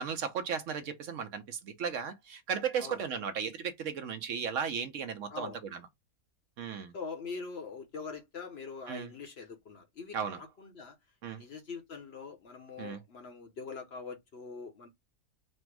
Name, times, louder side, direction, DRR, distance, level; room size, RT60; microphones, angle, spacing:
voice 1, 0.0-5.8 6.6-6.9 8.9-9.1 10.1-10.4 11.2-11.4 12.8-13.0, right 7 dB, 65° right, 0.9 m, -35 dB
voice 2, 5.3-5.6 6.9-10.2 10.6-10.9 11.3-14.9, left 4 dB, 50° left, 0.9 m, -43 dB
4.3 x 2.0 x 4.5 m
omnidirectional pair, 1.5 m